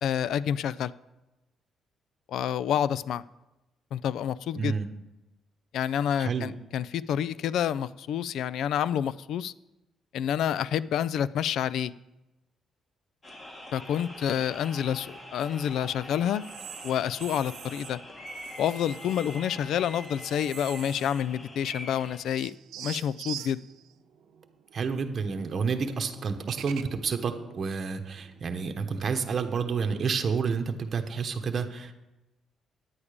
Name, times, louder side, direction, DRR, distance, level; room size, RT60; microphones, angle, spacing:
voice 1, 0.0-0.9 2.3-3.2 3.9-4.7 5.7-9.5 10.1-11.9 13.7-16.4 16.8-18.0 18.6-23.6, left 9 dB, 75° left, 19 dB, 0.3 m, -28 dB
voice 2, 4.5-4.9 6.2-6.5 24.7-31.9, right 5 dB, 50° right, 6 dB, 1.0 m, -29 dB
sound 1, 13.2-22.2, left 1 dB, 30° left, 1.9 m, -44 dB
sound 2, 16.4-17.9 18.3-19.4 19.8-21.4 21.6-21.7 22.3-29.7, right 11 dB, 90° right, 0.6 m, -46 dB
9.7 x 8.6 x 5.0 m, 1.0 s
cardioid pair, 90°, 0 cm